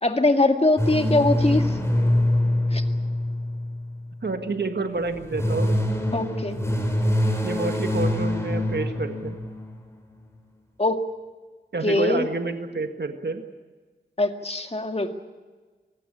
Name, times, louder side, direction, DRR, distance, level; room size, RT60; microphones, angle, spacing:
voice 1, 0.0-1.8 2.7-2.8 6.1-6.6 10.8-11.0 11.8-12.3 14.2-15.1, left 2 dB, 35° left, 6 dB, 2.1 m, -22 dB
sound 1, 0.8-4.2 5.0-9.8, left 1 dB, 15° left, 5.3 m, -24 dB
voice 2, 4.2-5.7 7.4-9.4 11.7-13.4, right 3 dB, 65° right, 7 dB, 1.8 m, -28 dB
23.5 x 16.0 x 9.9 m, 1.4 s
wide cardioid pair, 50°, 18 cm